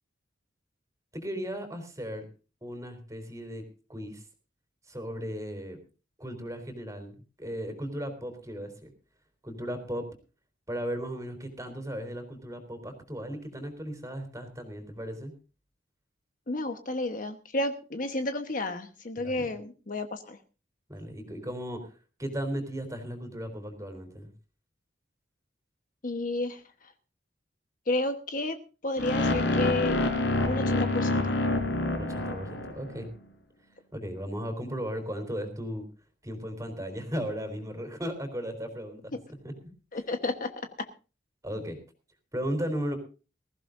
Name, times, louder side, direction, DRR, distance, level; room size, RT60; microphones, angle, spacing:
voice 1, 1.1-2.2 2.6-3.6 3.9-4.2 4.9-5.8 6.2-8.9 9.4-10.1 10.7-15.3 19.2-19.5 20.9-21.9 22.2-24.3 32.0-33.1 33.9-35.8 36.2-39.2 39.4-39.5 41.4-41.8 42.3-43.0, equal, 20° right, 7 dB, 3.8 m, -36 dB
voice 2, 16.5-20.4 26.0-26.9 27.9-28.6 28.8-30.0 30.5-31.4 39.9-40.5 40.8-40.9, left 2 dB, 45° left, 7 dB, 1.2 m, -31 dB
sound 1, 29.0-33.1, left 2 dB, 75° left, 4.6 m, -27 dB
21.0 x 15.0 x 2.6 m, 0.34 s
head